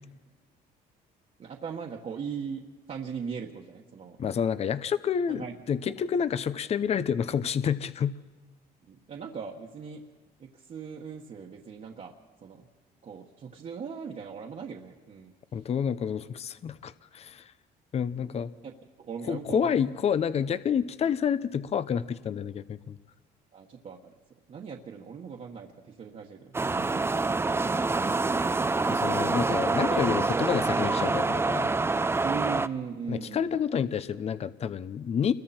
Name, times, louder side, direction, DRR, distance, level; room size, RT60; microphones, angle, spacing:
voice 1, 1.4-4.3 5.3-5.6 5.9-6.0 8.9-10.0 10.4-12.1 12.4-12.7 13.0-15.3 18.2-18.3 18.6-18.7 19.0-19.8 23.5-24.1 24.5-27.4 32.2-33.5, right 6 dB, 45° right, -1 dB, 1.6 m, -39 dB
voice 2, 4.2-8.2 15.5-17.5 17.9-18.5 19.3-23.0 28.9-31.7 33.1-35.3, left 7 dB, 40° left, 14 dB, 0.7 m, -29 dB
sound 1, 26.5-32.7, right 3 dB, 15° right, 0.6 m, -26 dB
29.0 x 21.5 x 4.4 m, 1.4 s
cardioid pair, 110°, 17 cm